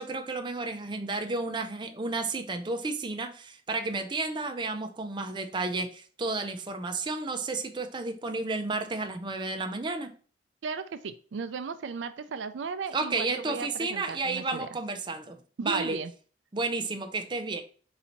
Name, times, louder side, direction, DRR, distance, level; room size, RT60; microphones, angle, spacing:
voice 1, 0.0-10.1 12.9-16.0 16.5-17.6, right 3 dB, 25° right, 6 dB, 0.5 m, -32 dB
voice 2, 10.6-14.7 15.6-16.1, right 5 dB, 85° right, 10 dB, 0.4 m, -36 dB
4.0 x 2.7 x 4.4 m, 0.39 s
head